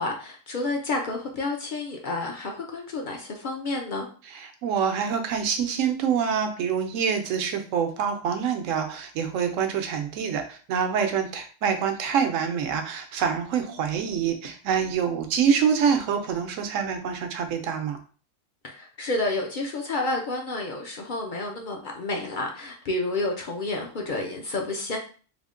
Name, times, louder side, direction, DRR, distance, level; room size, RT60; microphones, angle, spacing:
voice 1, 0.0-4.1 18.6-25.0, left 2 dB, 55° left, 1 dB, 0.6 m, -30 dB
voice 2, 4.3-18.0, right 7 dB, 80° right, 6 dB, 1.0 m, -26 dB
3.5 x 2.1 x 3.6 m, 0.39 s
omnidirectional pair, 1.3 m